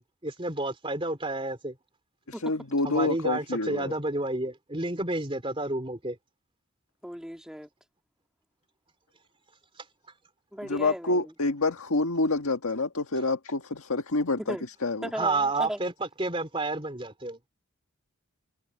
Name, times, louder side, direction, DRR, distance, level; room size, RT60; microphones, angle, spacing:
voice 1, 0.0-1.7 2.8-6.2 15.1-17.4, right 2 dB, 25° right, 3.4 m, -30 dB
voice 2, 2.3-3.9 10.6-14.6 14.8-15.1, left 2 dB, 85° left, 1.7 m, -27 dB
voice 3, 7.0-7.7 10.5-11.3 14.5-14.6 15.0-15.8, equal, 5° right, 2.4 m, -36 dB
head